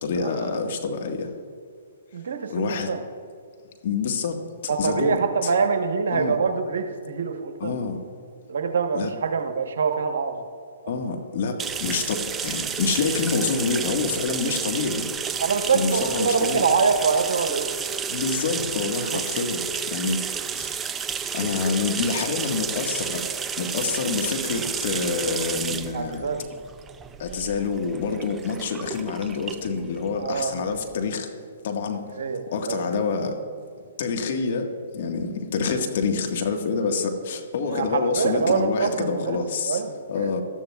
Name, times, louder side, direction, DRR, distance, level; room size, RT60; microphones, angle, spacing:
voice 1, 0.0-1.3 2.5-2.9 3.8-5.5 6.1-6.4 7.6-8.0 8.9-9.1 10.9-15.0 15.7-16.6 18.1-20.2 20.5-20.8 21.3-23.2 23.6-26.2 27.2-31.3 31.6-32.0 32.5-33.4 34.0-39.8 40.1-40.4, left 5 dB, 55° left, 4 dB, 1.5 m, -27 dB
voice 2, 2.1-3.0 4.7-7.7 8.5-10.4 10.8-11.1 15.4-17.7 19.1-19.2 25.9-26.4 30.2-30.5 32.2-33.0 37.6-39.4 39.7-40.0, right 5 dB, 70° right, 6 dB, 1.1 m, -25 dB
sound 1, 11.6-31.0, right 6 dB, 15° right, 0.4 m, -31 dB
18.0 x 12.5 x 2.3 m, 2.3 s
hypercardioid pair, 135°, 0 cm